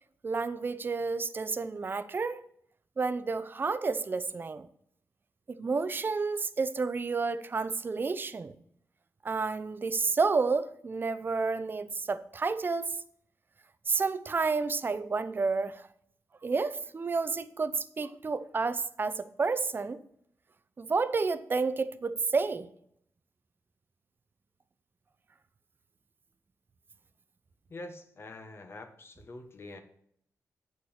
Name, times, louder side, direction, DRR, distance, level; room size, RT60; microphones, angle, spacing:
voice 1, 0.2-2.4 3.0-4.7 5.5-8.5 9.2-13.0 13.9-15.9 16.4-20.0 20.8-22.7, right 4 dB, 35° right, 0.7 m, -30 dB
voice 2, 27.7-29.8, left 2 dB, 45° left, 1.4 m, -45 dB
8.2 x 7.0 x 6.5 m
cardioid pair, 100°, 6 cm